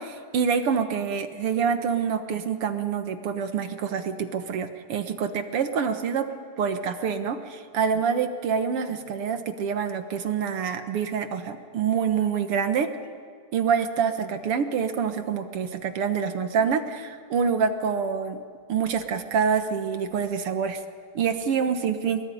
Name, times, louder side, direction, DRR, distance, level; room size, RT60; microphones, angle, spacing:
voice 1, 0.0-12.9 13.5-18.4 18.7-20.8 21.1-22.2, right 6 dB, 55° right, 8 dB, 1.7 m, -26 dB
25.0 x 21.0 x 10.0 m, 2.1 s
omnidirectional pair, 3.8 m